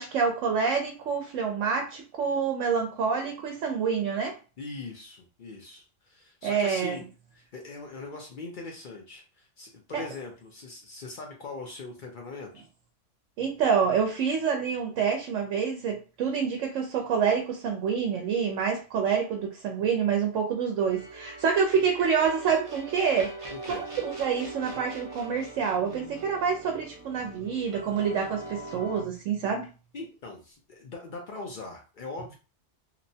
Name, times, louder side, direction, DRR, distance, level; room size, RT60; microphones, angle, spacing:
voice 1, 0.0-4.4 6.4-7.0 9.9-10.0 13.4-23.3 23.7-29.7, right 6 dB, 80° right, 2 dB, 0.9 m, -27 dB
voice 2, 4.6-7.1 7.3-12.6 23.5-23.9 27.1-28.0 29.9-32.3, left 3 dB, 55° left, 1 dB, 0.6 m, -41 dB
sound 1, 20.9-29.0, right 2 dB, 40° right, 0.5 m, -42 dB
2.9 x 2.1 x 2.6 m, 0.33 s
omnidirectional pair, 1.3 m